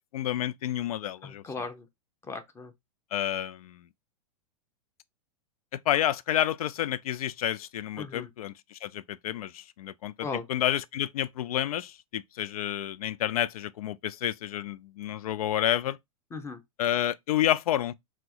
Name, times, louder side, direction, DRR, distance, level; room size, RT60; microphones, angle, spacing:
voice 1, 0.1-1.4 3.1-3.8 5.7-10.1 10.5-16.0 16.8-17.9, left 12 dB, 75° left, 0.4 m, -29 dB
voice 2, 1.2-1.9 2.2-2.7 8.0-8.3 10.2-10.5 16.3-16.6, left 4 dB, 15° left, 0.9 m, -37 dB
3.1 x 2.8 x 3.8 m
hypercardioid pair, 115°, 19 cm